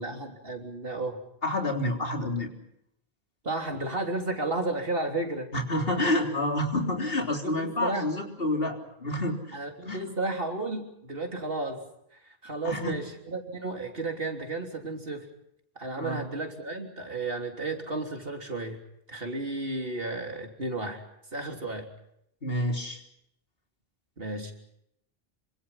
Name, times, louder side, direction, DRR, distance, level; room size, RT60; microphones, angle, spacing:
voice 1, 0.0-1.2 3.4-5.5 7.4-8.1 9.5-11.8 12.4-15.2 15.8-18.8 19.1-21.0 21.3-21.9 24.2-24.5, right 2 dB, 65° right, 3 dB, 3.7 m, -33 dB
voice 2, 1.4-2.5 5.5-10.1 12.6-12.9 16.0-16.3 22.4-23.0, left 1 dB, 65° left, 2 dB, 3.9 m, -29 dB
26.5 x 25.0 x 5.8 m, 0.76 s
omnidirectional pair, 1.0 m